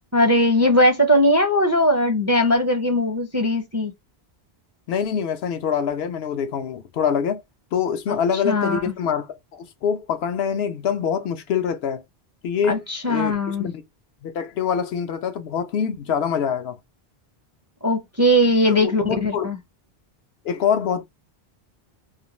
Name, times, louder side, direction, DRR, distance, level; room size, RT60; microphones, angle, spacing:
voice 1, 0.1-3.9 8.1-8.2 8.4-8.8 12.7-13.7 17.8-19.6, left 1 dB, 20° right, 0.4 m, -19 dB
voice 2, 4.9-7.4 7.7-12.0 12.4-13.8 14.2-16.8 18.7-19.5 20.4-21.0, left 7 dB, 75° left, 0.8 m, -25 dB
2.4 x 2.2 x 2.9 m
omnidirectional pair, 1.1 m